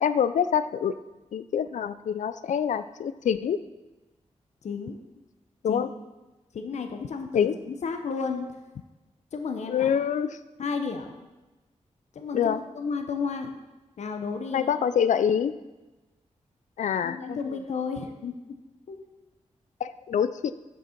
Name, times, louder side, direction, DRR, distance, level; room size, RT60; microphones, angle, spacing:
voice 1, 0.0-0.9 1.3-3.6 5.6-5.9 7.3-7.6 9.7-10.4 12.3-12.6 14.5-15.5 16.8-17.4 19.8-20.5, left 8 dB, 85° left, 13 dB, 0.4 m, -25 dB
voice 2, 4.6-5.0 5.7-5.9 6.5-8.5 9.3-9.9 10.6-11.2 12.1-13.5 14.0-14.7 17.0-18.4 18.9-19.0, left 5 dB, 70° left, 6 dB, 0.7 m, -32 dB
7.9 x 6.4 x 4.4 m, 1.1 s
wide cardioid pair, 180°, 12 cm